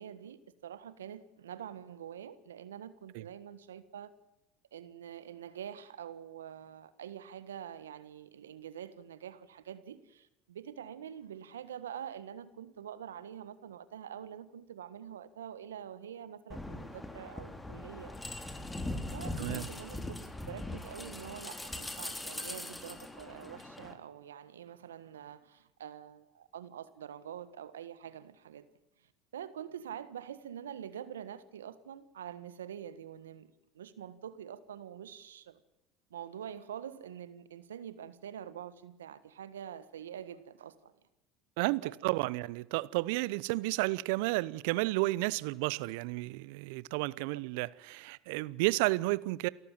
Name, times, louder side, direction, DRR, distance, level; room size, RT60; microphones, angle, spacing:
voice 1, 0.0-4.1 4.7-18.1 19.1-28.7 29.3-35.6 36.1-40.9 41.8-41.9, right 9 dB, 90° right, 1.5 m, -46 dB
sound 1, 16.5-23.9, left 2 dB, 10° left, 3.5 m, -41 dB
voice 2, 41.6-49.5, right 21 dB, 70° right, 0.8 m, -32 dB
28.5 x 14.0 x 7.5 m
hypercardioid pair, 80°, 0 cm